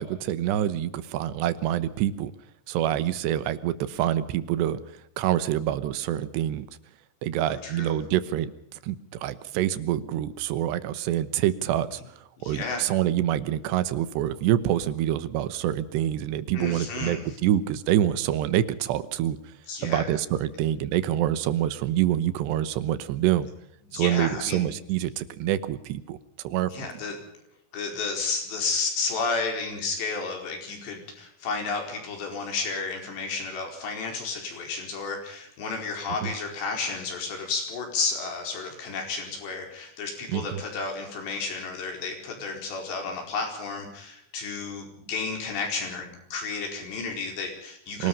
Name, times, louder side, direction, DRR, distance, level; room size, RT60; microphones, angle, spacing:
voice 1, 0.0-2.3 2.7-4.8 5.2-6.7 7.2-19.4 19.8-23.5 23.9-26.2 26.4-26.9 36.2-36.3 40.3-40.6 48.0-48.1, right 12 dB, 80° right, 14 dB, 3.2 m, -26 dB
voice 2, 7.5-8.0 12.4-12.9 16.5-17.2 19.7-20.0 23.9-24.7 26.7-27.2 27.7-48.1, left 4 dB, 85° left, 3 dB, 6.8 m, -32 dB
25.0 x 18.5 x 5.5 m, 0.75 s
omnidirectional pair, 4.9 m